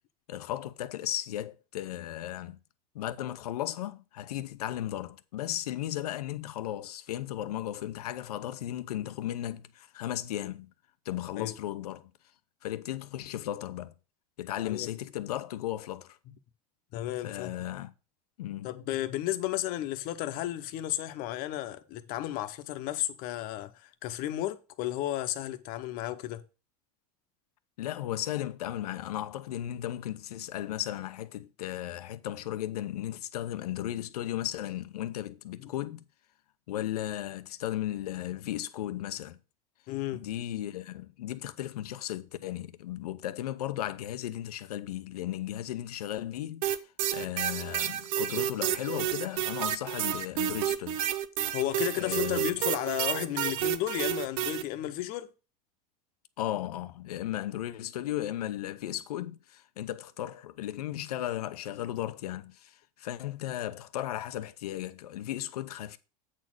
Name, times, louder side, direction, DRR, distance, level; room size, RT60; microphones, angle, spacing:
voice 1, 0.3-2.6 2.9-10.7 11.1-12.1 12.6-13.9 14.4-16.2 17.2-17.9 18.4-18.7 27.8-36.0 36.7-39.4 40.1-46.6 47.1-51.0 52.0-52.4 56.4-66.0, left 13 dB, 90° left, 0.7 m, -35 dB
voice 2, 14.6-14.9 16.3-16.4 16.9-17.5 18.6-26.4 35.6-35.7 39.9-40.2 51.5-55.3, left 14 dB, 50° left, 0.9 m, -33 dB
sound 1, 46.6-54.6, right 11 dB, 65° right, 0.8 m, -30 dB
8.4 x 4.3 x 6.1 m
supercardioid pair, 125°, 19 cm